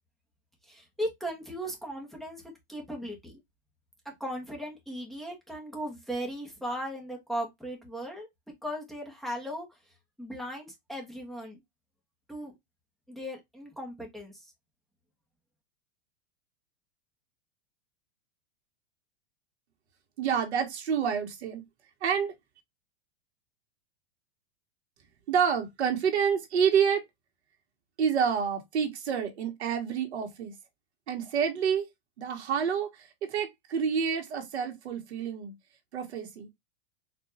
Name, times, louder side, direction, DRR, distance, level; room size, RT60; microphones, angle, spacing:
voice 1, 0.7-3.4 4.0-8.3 8.6-9.7 10.2-11.6 12.3-12.5 13.1-14.4, equal, ahead, 1.2 m, -37 dB
voice 2, 20.2-21.6 22.0-22.3 25.3-27.0 28.0-30.5 31.1-31.9 32.2-35.5 35.9-36.5, right 7 dB, 85° right, 1.5 m, -28 dB
4.4 x 2.7 x 2.7 m
supercardioid pair, 145°, 33 cm